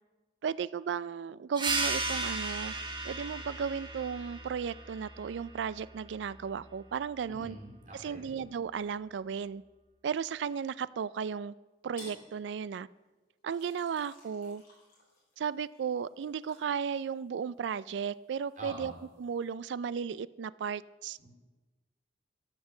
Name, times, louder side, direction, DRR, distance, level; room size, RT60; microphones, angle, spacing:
voice 1, 0.4-2.7 3.0-7.6 7.9-9.6 10.0-11.5 11.8-12.9 13.4-14.6 15.4-18.9 19.2-21.2, right 7 dB, 80° right, 19 dB, 0.3 m, -35 dB
sound 1, 1.6-6.7, right 3 dB, 25° right, 1.1 m, -36 dB
voice 2, 7.2-8.3 18.6-19.0 21.2-21.3, right 2 dB, 45° right, -1 dB, 3.0 m, -45 dB
sound 2, 12.0-12.3 13.5-17.8 18.1-19.5, left 2 dB, 45° left, 4.1 m, -56 dB
13.0 x 5.4 x 7.1 m, 1.2 s
head